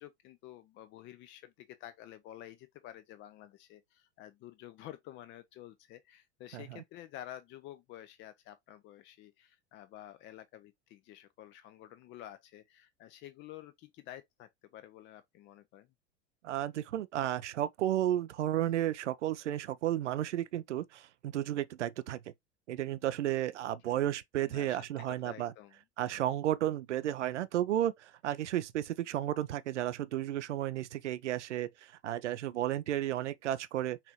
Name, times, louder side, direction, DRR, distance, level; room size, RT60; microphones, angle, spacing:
voice 1, 0.0-15.9 23.8-24.1 24.5-25.8 26.1-26.3, left 12 dB, 35° left, 0.5 m, -50 dB
voice 2, 6.5-6.8 16.4-22.2 22.7-25.5 26.0-34.0, right 12 dB, 80° right, 0.5 m, -33 dB
5.7 x 2.5 x 2.9 m
hypercardioid pair, 85°, 35 cm